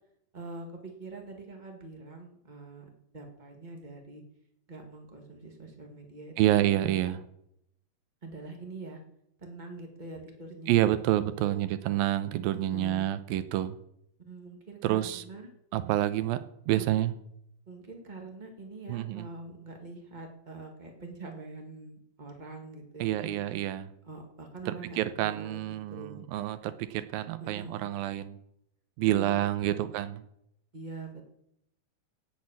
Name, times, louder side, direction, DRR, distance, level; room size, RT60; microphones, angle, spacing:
voice 1, 0.3-4.2 4.7-6.9 8.2-9.0 9.4-11.0 11.4-11.6 12.7-13.1 14.2-15.5 16.7-17.0 17.7-23.4 24.0-26.2 27.4-27.8 29.1-29.3 29.6-29.9 30.7-31.2, right 3 dB, 50° right, 3 dB, 0.5 m, -44 dB
voice 2, 6.4-7.2 10.7-13.8 14.8-15.2 15.7-16.4 16.7-17.1 18.9-19.3 23.0-23.9 24.7-28.4 29.0-30.2, right 13 dB, 80° right, 12 dB, 2.5 m, -28 dB
17.0 x 6.4 x 7.4 m, 0.77 s
omnidirectional pair, 4.3 m